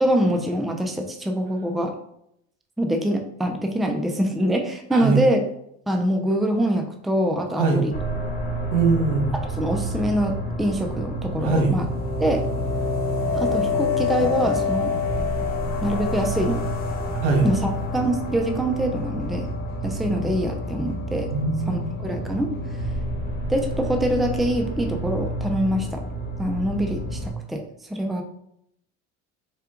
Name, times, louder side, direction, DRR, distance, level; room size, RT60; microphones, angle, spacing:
voice 1, 0.0-1.9 2.8-5.4 5.9-7.9 9.6-11.9 12.2-12.4 13.3-14.9 15.8-16.6 17.4-19.5 19.8-21.3 21.7-22.5 23.5-26.0 26.4-27.6 27.9-28.2, right 1 dB, ahead, 3 dB, 0.5 m, -24 dB
voice 2, 4.9-5.2 7.6-7.8 8.7-9.3 11.4-11.7 17.2-17.4 21.3-21.9, right 4 dB, 85° right, 3 dB, 1.3 m, -21 dB
sound 1, 7.9-27.3, left 1 dB, 30° left, 1.3 m, -28 dB
5.7 x 2.4 x 3.7 m, 0.74 s
cardioid pair, 120°, 32 cm